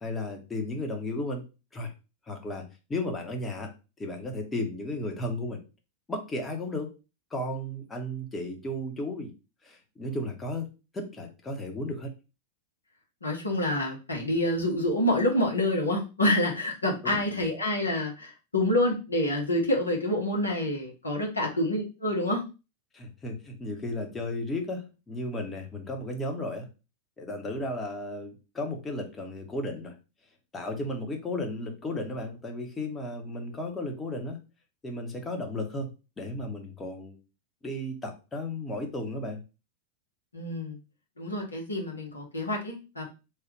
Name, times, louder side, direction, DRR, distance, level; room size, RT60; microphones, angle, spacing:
voice 1, 0.0-1.4 1.7-1.9 2.3-3.7 4.0-5.6 6.1-6.9 7.3-9.3 9.6-10.7 10.9-12.1 17.0-17.1 22.9-26.7 27.2-30.0 30.5-34.4 34.8-35.9 36.2-37.2 37.6-39.4, left 1 dB, 15° left, 3 dB, 0.9 m, -34 dB
voice 2, 13.2-22.4 40.3-40.8 41.2-43.0, left 1 dB, 80° left, -1 dB, 1.0 m, -27 dB
3.1 x 2.3 x 3.2 m, 0.30 s
figure-of-eight pair, 90°, 0 cm